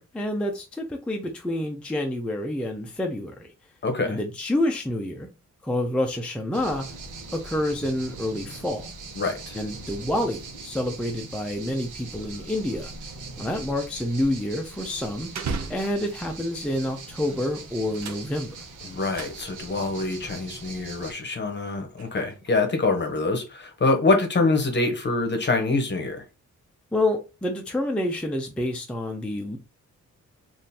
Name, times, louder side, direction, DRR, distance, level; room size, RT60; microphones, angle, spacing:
voice 1, 0.0-3.5 4.0-5.3 5.6-6.8 7.3-8.9 9.5-12.9 13.4-15.3 15.7-18.6 26.9-29.6, left 1 dB, 5° left, 0.4 m, -28 dB
voice 2, 3.8-4.2 9.2-9.6 18.8-26.2, left 3 dB, 35° left, 0.8 m, -25 dB
sound 1, 6.5-21.1, right 3 dB, 90° right, 0.9 m, -41 dB
sound 2, 15.3-16.4 17.1-17.5 17.8-19.9 20.3-20.5 21.1-22.6, right 5 dB, 65° right, 0.6 m, -38 dB
3.6 x 2.5 x 2.7 m
wide cardioid pair, 135°, 30 cm